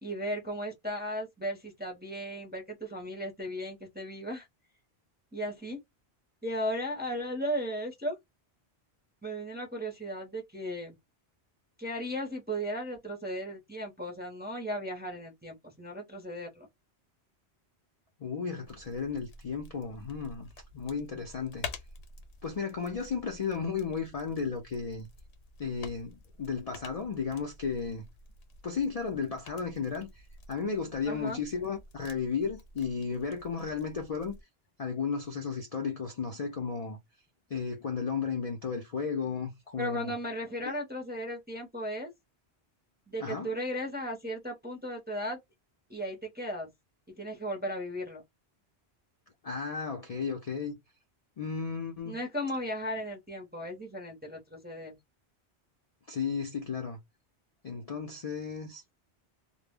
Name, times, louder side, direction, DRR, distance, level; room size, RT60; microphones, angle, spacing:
voice 1, 0.0-4.5 5.3-5.8 6.4-8.2 9.2-11.0 11.8-16.7 31.1-31.4 39.8-42.1 43.1-45.4 45.9-46.7 47.1-48.2 52.1-55.0, equal, 10° right, 0.5 m, -36 dB
voice 2, 18.2-20.5 20.7-21.7 22.4-25.1 25.6-28.1 28.6-34.4 34.8-37.0 37.5-40.1 40.6-40.7 43.2-43.5 49.4-50.8 51.4-52.2 56.1-57.0 57.6-58.8, left 5 dB, 50° left, 0.4 m, -34 dB
sound 1, 18.6-34.4, left 4 dB, 85° left, 0.9 m, -49 dB
2.1 x 2.0 x 3.4 m
omnidirectional pair, 1.1 m